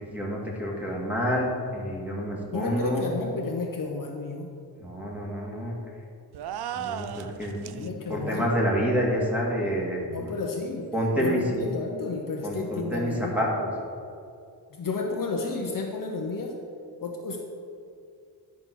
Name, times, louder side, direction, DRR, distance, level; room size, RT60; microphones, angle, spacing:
voice 1, 0.1-3.1 4.8-5.7 6.7-10.3 10.9-11.4 12.4-13.7, equal, 5° right, -4 dB, 2.3 m, -28 dB
voice 2, 2.5-4.5 7.7-8.5 10.1-13.4 14.7-16.6 17.0-17.4, left 3 dB, 50° left, 1 dB, 1.0 m, -32 dB
sound 1, 6.3-7.9, right 9 dB, 65° right, 0.5 m, -35 dB
11.0 x 4.3 x 6.3 m, 2.4 s
cardioid pair, 95°, 42 cm